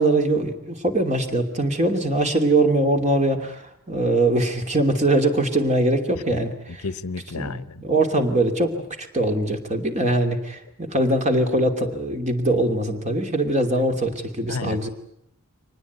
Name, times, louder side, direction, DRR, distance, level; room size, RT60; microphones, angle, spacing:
voice 1, 0.0-6.8 7.3-8.8 9.1-14.9, right 1 dB, 30° right, 5 dB, 2.8 m, -22 dB
voice 2, 6.7-7.8 14.5-14.9, left 4 dB, 75° left, 16 dB, 0.9 m, -32 dB
24.5 x 19.5 x 9.4 m, 0.78 s
head